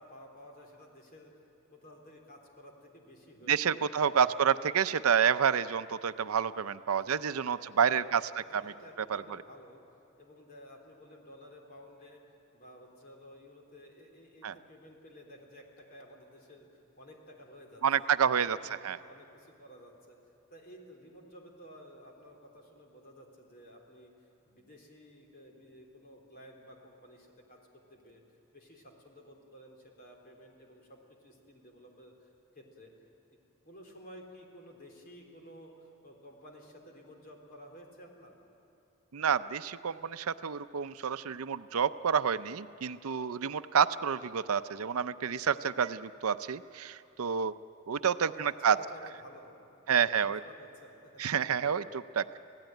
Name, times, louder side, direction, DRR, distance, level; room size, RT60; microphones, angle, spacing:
voice 1, 0.0-1.3 1.7-4.5 7.0-9.8 10.2-12.2 12.5-18.1 18.4-20.2 20.5-24.1 24.5-28.2 28.5-32.3 32.5-32.9 33.6-38.3 48.3-51.2, equal, 45° left, 1 dB, 3.7 m, -53 dB
voice 2, 3.5-8.2 8.5-8.7 9.1-9.2 14.4-14.5 17.8-18.6 18.8-19.0 39.1-47.5 47.9-48.8 49.9-50.4 51.2-52.4, right 7 dB, 75° right, 13 dB, 0.6 m, -29 dB
26.5 x 17.0 x 9.1 m, 2.8 s
head